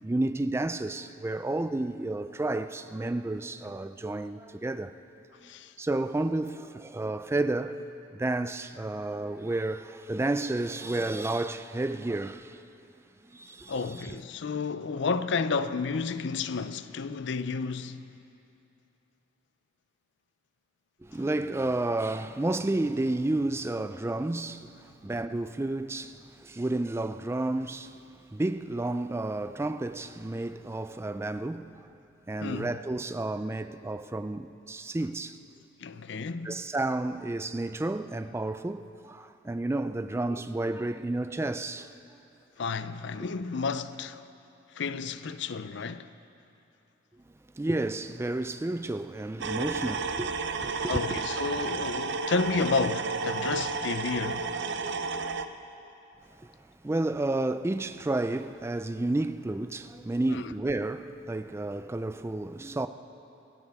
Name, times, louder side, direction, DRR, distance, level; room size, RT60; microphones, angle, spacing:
voice 1, 0.0-4.9 5.8-7.8 8.1-12.6 13.3-14.2 21.0-28.0 28.3-31.9 32.3-35.4 36.4-41.9 47.6-50.3 50.6-51.2 56.4-56.5 56.8-62.9, right 2 dB, 15° right, 0.3 m, -31 dB
voice 2, 5.4-5.7 13.7-18.0 32.4-32.8 35.8-36.6 42.6-44.2 44.7-46.2 50.9-54.5 60.3-60.5, left 4 dB, 60° left, 0.5 m, -31 dB
sound 1, 49.4-55.5, right 4 dB, 60° right, 0.6 m, -32 dB
27.0 x 14.5 x 3.5 m
head